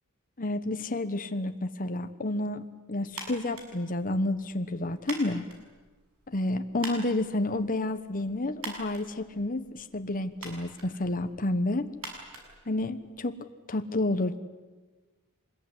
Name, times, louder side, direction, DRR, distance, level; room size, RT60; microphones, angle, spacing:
voice 1, 0.4-5.4 6.3-11.9 12.7-13.4 13.7-14.4, left 2 dB, 40° left, 8 dB, 1.2 m, -30 dB
sound 1, 3.1-13.3, right 3 dB, 75° right, 6.8 m, -46 dB
25.5 x 21.0 x 9.8 m, 1.2 s
head